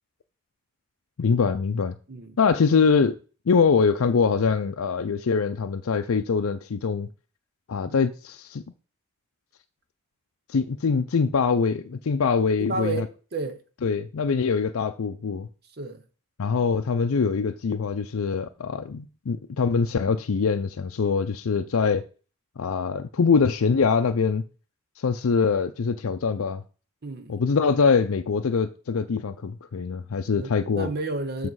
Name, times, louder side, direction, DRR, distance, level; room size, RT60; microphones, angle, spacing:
voice 1, 1.2-2.0 2.4-3.2 3.5-7.1 7.7-8.6 10.5-13.1 13.8-15.5 16.4-22.0 22.6-24.4 25.0-26.6 27.3-30.9 31.4-31.5, left 5 dB, 70° left, 0.5 m, -23 dB
voice 2, 12.6-13.6 15.8-16.0 27.0-27.4 30.3-31.5, right 3 dB, 45° right, 0.8 m, -32 dB
7.5 x 6.5 x 4.7 m
head